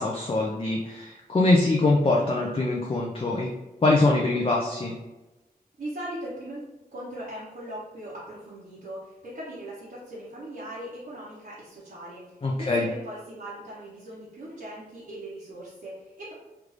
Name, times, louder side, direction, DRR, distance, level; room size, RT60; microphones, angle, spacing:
voice 1, 0.0-3.5 3.8-4.9 12.4-12.9, left 2 dB, 35° left, -2 dB, 0.4 m, -23 dB
voice 2, 5.8-6.6 6.9-16.3, right 1 dB, 80° right, -9 dB, 0.9 m, -39 dB
3.3 x 2.5 x 3.2 m, 1.0 s
wide cardioid pair, 90°, 16 cm